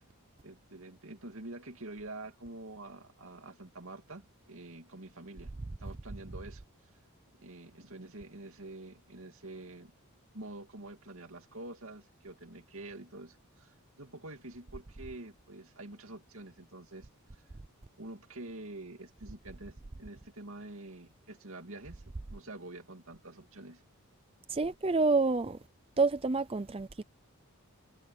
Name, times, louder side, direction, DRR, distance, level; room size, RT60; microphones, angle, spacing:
voice 1, 0.4-5.5 5.8-6.6 7.3-9.9 10.3-17.4 18.0-23.8, right 2 dB, 70° right, 2.6 m, -47 dB
voice 2, 24.5-25.6 26.0-27.0, right 3 dB, 25° right, 0.5 m, -28 dB
head